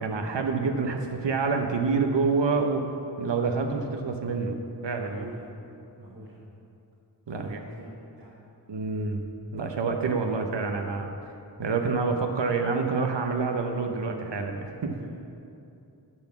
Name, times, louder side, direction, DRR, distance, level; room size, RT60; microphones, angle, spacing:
voice 1, 0.0-2.8 3.2-5.3 7.3-7.6 8.7-9.3 9.5-11.2 11.6-15.0, right 4 dB, 90° right, 4 dB, 0.8 m, -27 dB
voice 2, 4.9-5.5 6.0-6.4 7.3-8.4 14.9-15.2, right 2 dB, 55° right, -6 dB, 1.4 m, -45 dB
11.0 x 5.9 x 5.8 m, 2.6 s
wide cardioid pair, 45°, 42 cm